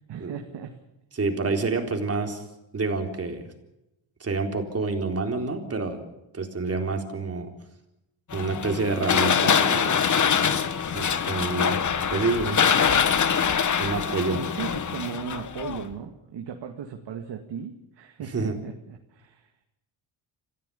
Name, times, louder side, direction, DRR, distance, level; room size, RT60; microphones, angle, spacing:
voice 1, 0.1-0.8 14.3-19.5, right 7 dB, 65° right, 4 dB, 2.1 m, -37 dB
voice 2, 1.2-2.4 2.7-3.4 4.2-6.0 6.3-7.5 8.3-10.0 10.9-11.8 12.1-12.7 13.8-14.4 18.3-18.5, right 3 dB, 30° right, 4 dB, 4.0 m, -27 dB
sound 1, 8.3-15.9, left 7 dB, 40° left, 1.5 m, -24 dB
26.5 x 15.5 x 7.0 m, 0.91 s
cardioid pair, 105°, 46 cm